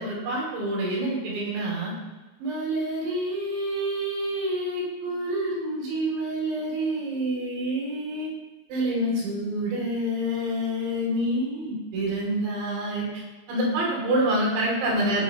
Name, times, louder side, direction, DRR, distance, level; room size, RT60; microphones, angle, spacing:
voice 1, 0.0-1.9 2.4-8.3 8.7-13.2 13.5-15.2, right 1 dB, 75° right, -4 dB, 5.3 m, -27 dB
17.5 x 6.9 x 3.1 m, 1.2 s
omnidirectional pair, 5.1 m